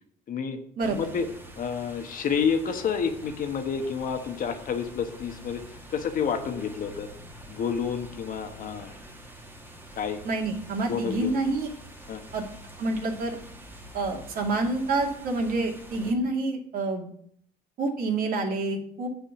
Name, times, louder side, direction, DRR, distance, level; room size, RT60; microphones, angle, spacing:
voice 1, 0.3-1.3 1.6-5.6 5.9-7.1 7.5-8.9 10.0-10.2 10.9-11.4 12.1-12.2, left 6 dB, 55° left, 7 dB, 1.3 m, -29 dB
sound 1, 0.8-16.1, right 1 dB, 10° right, 1.8 m, -46 dB
voice 2, 10.2-11.7 12.3-12.4 12.8-13.4 13.9-17.1 17.8-19.1, right 2 dB, 55° right, 2 dB, 2.1 m, -28 dB
8.3 x 5.9 x 7.1 m, 0.64 s
cardioid pair, 110°, 17 cm